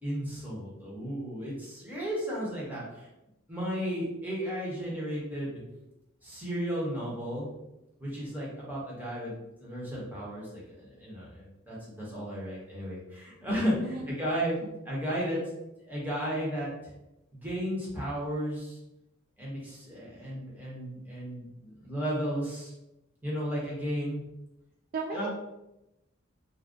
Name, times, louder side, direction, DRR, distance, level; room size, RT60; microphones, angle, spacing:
voice 1, 0.0-3.1 3.5-5.6 6.2-7.5 8.0-9.3 9.6-14.6 14.8-15.4 15.9-16.9 17.3-18.8 19.4-22.7 23.2-24.2 25.1-25.3, equal, 10° right, -6 dB, 1.0 m, -34 dB
voice 2, 13.8-14.1 14.6-14.7 24.9-25.3, right 4 dB, 45° right, 0 dB, 0.3 m, -35 dB
2.6 x 2.2 x 3.6 m, 0.90 s
head